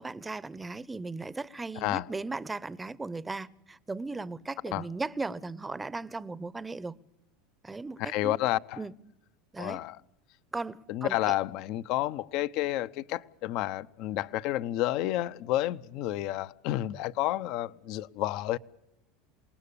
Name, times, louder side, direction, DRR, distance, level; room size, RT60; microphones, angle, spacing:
voice 1, 0.0-7.0 7.6-8.4 8.8-8.9 9.5-9.8 10.5-11.3, right 3 dB, 10° right, 0.8 m, -37 dB
voice 2, 8.0-8.8 9.6-10.0 10.9-18.6, left 14 dB, 60° left, 0.8 m, -30 dB
27.5 x 19.0 x 7.0 m
supercardioid pair, 115°, 0 cm